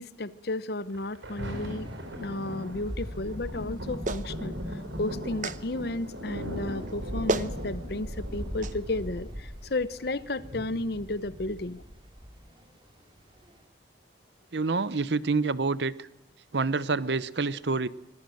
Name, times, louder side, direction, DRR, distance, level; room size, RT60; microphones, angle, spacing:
voice 1, 0.0-1.9 2.2-4.5 5.0-11.8, left 2 dB, 55° left, 16 dB, 0.8 m, -33 dB
Thunder, 0.9-11.9 12.5-12.6, equal, 90° right, 4.8 m, -39 dB
sound 1, 1.8-13.6, equal, 25° right, 2.6 m, -42 dB
Clapping, 4.1-4.3 5.4-5.6 6.9-7.0 7.3-7.5 8.6-8.8, right 2 dB, 45° right, 0.9 m, -29 dB
voice 2, 14.5-15.9 16.5-17.9, right 4 dB, 65° right, 17 dB, 0.8 m, -27 dB
24.5 x 17.5 x 7.7 m, 0.85 s
head